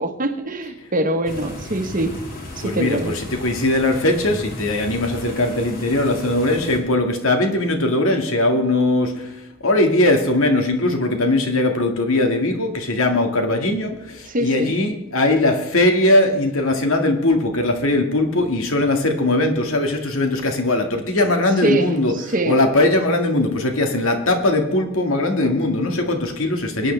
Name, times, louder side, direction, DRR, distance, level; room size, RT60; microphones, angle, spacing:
voice 1, 0.0-2.1 2.6-3.1 14.3-14.7 21.6-21.9 22.2-22.6, right 2 dB, 40° right, 6 dB, 1.2 m, -23 dB
sound 1, 1.3-6.8, left 1 dB, 45° left, 2.5 m, -35 dB
voice 2, 2.6-26.9, left 2 dB, 85° left, 4 dB, 1.9 m, -20 dB
20.5 x 9.7 x 3.3 m, 0.89 s
head